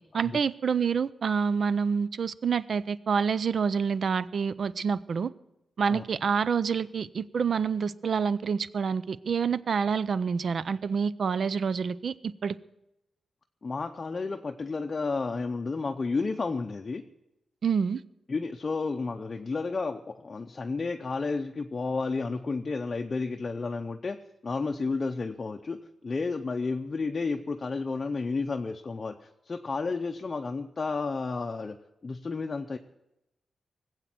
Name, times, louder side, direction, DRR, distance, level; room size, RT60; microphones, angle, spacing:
voice 1, 0.1-5.3 5.8-12.1 12.4-12.5 17.6-18.0, right 6 dB, 55° right, 17 dB, 0.5 m, -27 dB
voice 2, 13.6-17.0 18.3-31.8 32.0-32.8, left 4 dB, 35° left, 4 dB, 0.6 m, -32 dB
19.0 x 8.1 x 7.6 m, 0.89 s
wide cardioid pair, 145°, 0 cm